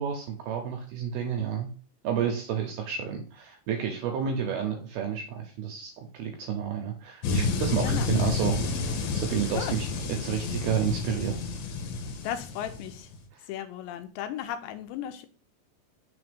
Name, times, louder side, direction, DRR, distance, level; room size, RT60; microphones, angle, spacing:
voice 1, 0.0-1.7 2.0-8.6 9.2-9.9 10.2-11.3, right 8 dB, 75° right, 3 dB, 2.3 m, -30 dB
sound 1, 7.2-13.2, left 4 dB, 65° left, 2.7 m, -30 dB
voice 2, 7.8-8.1 9.5-9.7 12.2-13.1 13.5-15.3, left 10 dB, 80° left, 8 dB, 2.8 m, -35 dB
6.3 x 4.0 x 5.1 m, 0.37 s
omnidirectional pair, 5.3 m